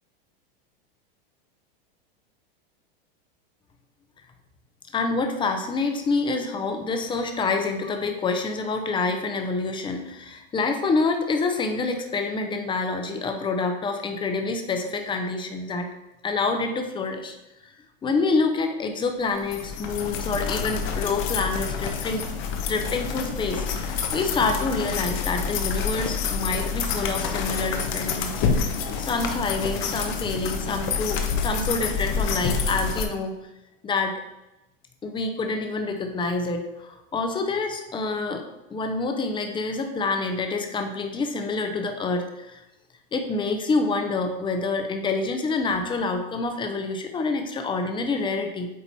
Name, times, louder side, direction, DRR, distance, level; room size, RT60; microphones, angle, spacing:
voice 1, 4.9-15.9 16.2-17.3 17.6-17.7 18.0-22.2 22.7-28.7 29.0-33.4 33.8-34.2 35.0-42.6 43.1-48.7, left 3 dB, 15° left, 5 dB, 0.8 m, -27 dB
sound 1, 19.4-33.1, left 6 dB, 45° left, 0.9 m, -28 dB
8.3 x 2.9 x 4.1 m, 0.94 s
supercardioid pair, 125°, 29 cm